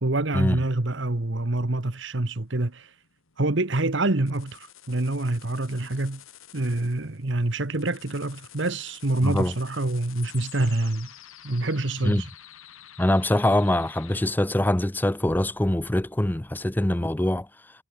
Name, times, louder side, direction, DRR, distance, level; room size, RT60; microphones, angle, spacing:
voice 1, 0.0-2.9 3.4-6.2 6.5-11.1 11.4-12.3, right 2 dB, 55° right, 1.3 m, -26 dB
sound 1, 1.3-14.3, left 11 dB, 75° left, 3.8 m, -49 dB
voice 2, 9.2-9.5 12.0-12.3 13.0-17.5, left 1 dB, 10° left, 0.4 m, -23 dB
head